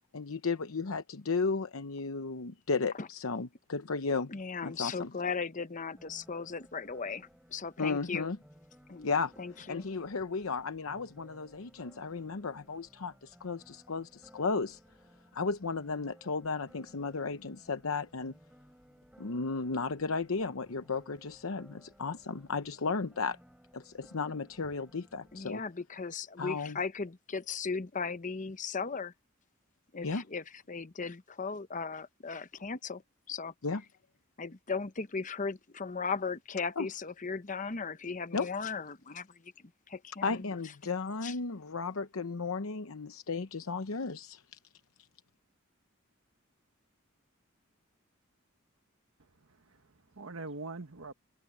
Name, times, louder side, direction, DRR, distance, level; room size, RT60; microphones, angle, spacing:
voice 1, 0.1-4.3 4.6-5.1 7.8-8.4 9.0-9.3 9.7-14.8 15.3-18.3 19.2-23.4 23.7-25.6 26.4-26.8 30.0-30.2 33.6-33.8 36.8-36.9 38.3-38.5 40.2-44.6, left 4 dB, 80° left, 0.8 m, -34 dB
voice 2, 4.3-8.3 8.9-9.1 9.4-9.9 25.3-29.1 29.9-33.0 33.3-33.5 34.4-39.5 39.9-40.5 41.2-41.3, left 5 dB, 35° left, 0.9 m, -37 dB
sound 1, 6.0-25.6, equal, 5° right, 3.4 m, -60 dB
voice 3, 49.2-51.1, right 3 dB, 75° right, 1.5 m, -44 dB
head